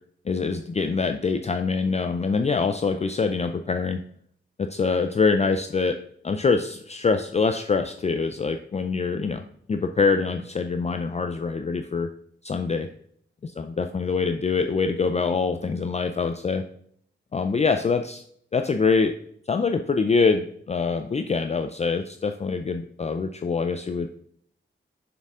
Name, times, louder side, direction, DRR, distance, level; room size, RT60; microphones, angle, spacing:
voice 1, 0.3-4.0 4.6-6.0 6.2-12.1 12.4-12.9 13.4-16.6 17.3-18.2 18.5-19.1 19.5-24.1, left 4 dB, 30° left, 7 dB, 0.4 m, -24 dB
6.8 x 6.6 x 3.7 m, 0.65 s
wide cardioid pair, 130°, 21 cm